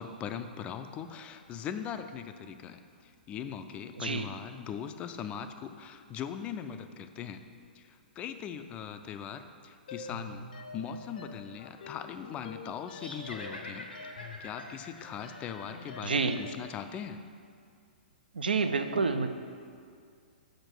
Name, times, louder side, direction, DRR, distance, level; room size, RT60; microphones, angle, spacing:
voice 1, 0.0-7.4 7.7-17.2, left 8 dB, 20° left, 9 dB, 0.4 m, -40 dB
sound 1, 9.9-16.7, left 3 dB, 60° left, 0.7 m, -47 dB
sound 2, 12.9-16.3, left 1 dB, 80° left, 0.9 m, -46 dB
voice 2, 16.0-16.4 18.3-19.3, right 4 dB, 75° right, 8 dB, 0.5 m, -28 dB
5.8 x 5.1 x 6.2 m, 2.2 s
figure-of-eight pair, 110°, 5 cm